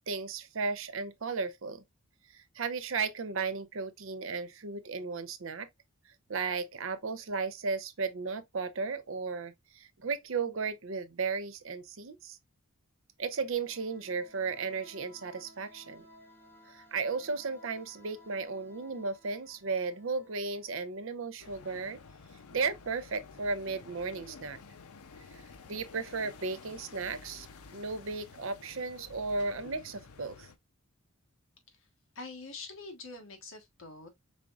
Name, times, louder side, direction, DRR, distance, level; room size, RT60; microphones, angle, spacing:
voice 1, 0.1-1.8 2.3-5.7 6.3-12.4 13.2-16.0 16.7-22.0 22.5-24.6 25.3-25.4 25.7-27.5 27.7-30.5, right 4 dB, 60° right, 0.6 m, -35 dB
sound 1, 13.2-21.8, equal, 10° left, 1.2 m, -58 dB
sound 2, 21.4-30.6, left 4 dB, 85° left, 0.7 m, -51 dB
voice 2, 32.1-34.1, left 3 dB, 65° left, 1.3 m, -45 dB
5.0 x 3.5 x 2.4 m
head